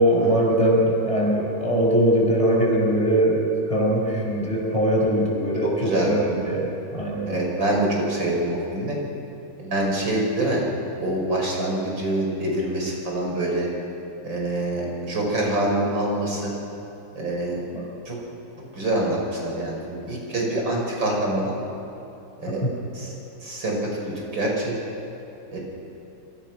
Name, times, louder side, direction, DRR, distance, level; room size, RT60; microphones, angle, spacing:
voice 1, 0.0-3.4 3.7-7.3 17.7-17.8 22.6-22.7, right 1 dB, 15° left, -2 dB, 5.1 m, -21 dB
voice 2, 5.6-6.1 7.3-9.0 9.6-10.6 11.0-13.7 14.2-16.5 17.2-17.6 18.1-18.2 18.7-21.5 22.4-22.6 22.9-23.1 23.4-23.8 24.0-24.7 25.5-25.6, right 1 dB, 75° right, -1 dB, 5.9 m, -25 dB
27.0 x 24.5 x 6.1 m, 2.9 s
omnidirectional pair, 2.0 m